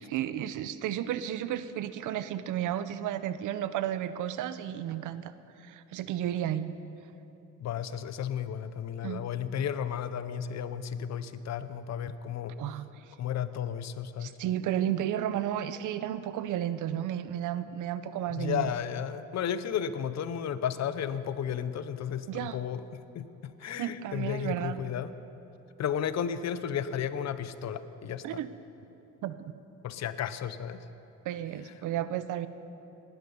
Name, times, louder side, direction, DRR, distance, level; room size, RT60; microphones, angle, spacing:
voice 1, 0.0-5.3 5.6-6.7 9.0-9.2 12.6-12.9 14.2-18.7 22.3-22.6 23.8-24.8 28.2-28.5 29.2-29.5 31.2-32.5, right 11 dB, 85° right, 13 dB, 0.7 m, -33 dB
voice 2, 7.6-12.6 13.2-14.4 18.3-22.8 23.1-25.1 25.8-28.4 29.8-30.8, left 8 dB, 60° left, 13 dB, 0.8 m, -33 dB
18.5 x 12.0 x 5.5 m, 3.0 s
cardioid pair, 90°, 30 cm